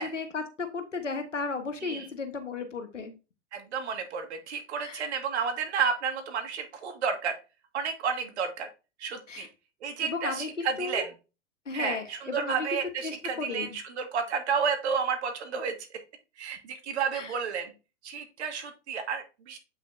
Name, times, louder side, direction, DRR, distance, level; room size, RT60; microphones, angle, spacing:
voice 1, 0.0-3.1 4.8-5.0 9.3-9.5 10.0-11.1 11.7-13.8 17.1-17.3, left 4 dB, 90° left, 6 dB, 1.5 m, -35 dB
voice 2, 3.5-7.3 7.7-8.7 9.0-9.5 9.8-11.1 11.7-15.7 16.4-17.7 18.0-19.6, right 6 dB, 65° right, 5 dB, 2.1 m, -31 dB
8.2 x 5.7 x 2.7 m, 0.30 s
figure-of-eight pair, 95°, 36 cm